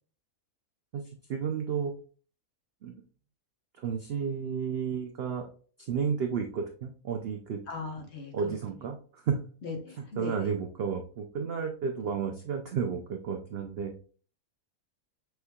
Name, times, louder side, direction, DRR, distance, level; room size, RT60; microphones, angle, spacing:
voice 1, 0.9-1.9 2.8-3.0 3.8-5.5 5.8-7.6 8.3-9.4 10.2-13.9, right 6 dB, 65° right, 4 dB, 0.6 m, -32 dB
voice 2, 7.7-8.5 9.6-10.5, left 3 dB, 50° left, 2 dB, 1.2 m, -38 dB
6.1 x 3.3 x 2.3 m, 0.42 s
omnidirectional pair, 1.6 m